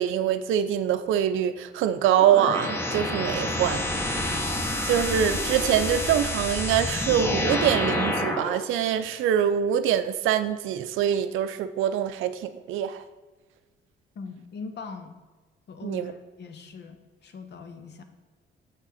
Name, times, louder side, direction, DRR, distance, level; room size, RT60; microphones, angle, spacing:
voice 1, 0.0-4.2 4.8-13.0 15.8-16.1, right 9 dB, 85° right, 11 dB, 0.5 m, -24 dB
sound 1, 2.2-8.6, left 1 dB, 10° left, 1.0 m, -28 dB
voice 2, 14.2-15.2 15.7-18.0, left 4 dB, 60° left, 8 dB, 0.9 m, -41 dB
6.7 x 6.2 x 4.1 m, 1.3 s
cardioid pair, 90°, 20 cm